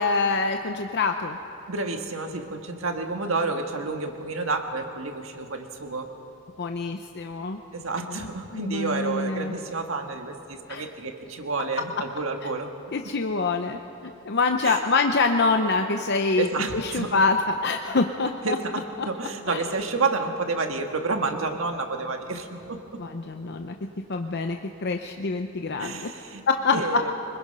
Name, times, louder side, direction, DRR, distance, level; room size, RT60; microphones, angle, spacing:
voice 1, 0.0-1.4 6.6-7.6 8.1-9.5 10.7-10.8 12.9-18.6 19.5-19.6 23.0-23.8 24.1-26.1 26.5-26.8, left 3 dB, 55° left, 5 dB, 0.7 m, -25 dB
voice 2, 1.7-6.1 7.7-12.7 14.6-14.8 16.4-17.2 18.4-23.0 25.8-26.4 26.7-27.1, right 3 dB, 70° right, 4 dB, 1.7 m, -30 dB
24.5 x 21.0 x 5.5 m, 2.9 s
head